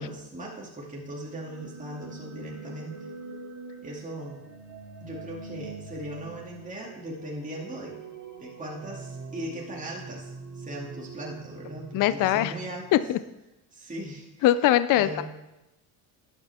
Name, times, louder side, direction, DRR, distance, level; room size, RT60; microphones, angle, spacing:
voice 1, 0.0-3.0 3.8-4.4 5.0-8.0 8.4-13.0 13.7-14.4 14.9-15.2, right 1 dB, 15° right, -3 dB, 2.5 m, -38 dB
sound 1, 1.1-13.0, right 4 dB, 40° right, 2.8 m, -44 dB
voice 2, 11.9-12.5 12.9-13.2 14.4-15.2, left 13 dB, 45° left, 14 dB, 0.5 m, -21 dB
11.5 x 9.2 x 3.6 m, 0.98 s
cardioid pair, 105°, 45 cm